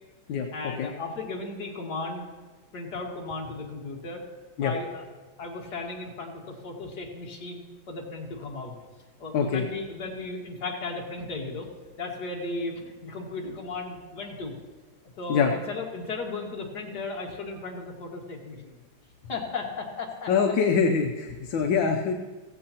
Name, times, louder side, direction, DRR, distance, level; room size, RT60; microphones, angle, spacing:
voice 1, 0.5-2.3 2.7-4.2 4.6-5.0 5.4-8.7 9.2-11.7 12.0-14.5 15.2-18.8 19.3-20.3, left 3 dB, 60° left, -1 dB, 2.3 m, -35 dB
voice 2, 20.3-22.1, left 6 dB, 75° left, 3 dB, 1.5 m, -24 dB
16.0 x 15.5 x 2.9 m, 1.3 s
omnidirectional pair, 2.1 m